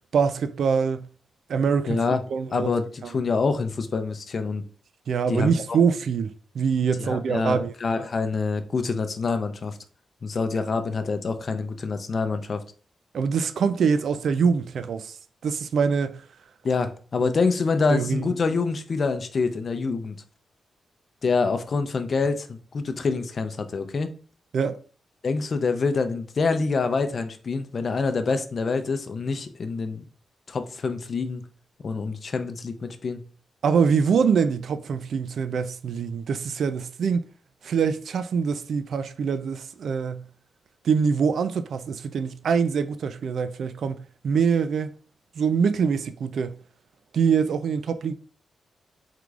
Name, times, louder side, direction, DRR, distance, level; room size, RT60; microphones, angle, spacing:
voice 1, 0.1-1.1 1.5-2.0 2.3-2.7 5.1-7.7 13.1-15.2 15.4-16.2 17.2-17.3 17.9-18.3 24.5-24.8 33.6-37.2 37.6-40.2 40.8-44.9 45.4-46.6 47.1-48.1, right 6 dB, 70° right, 0.4 m, -24 dB
voice 2, 1.9-2.2 2.5-4.6 5.3-5.8 7.0-9.8 10.2-12.6 16.6-20.2 21.2-24.1 25.2-30.0 30.5-31.4 31.8-33.2, left 4 dB, 45° left, 0.5 m, -26 dB
4.8 x 3.7 x 2.4 m
wide cardioid pair, 110°, 0 cm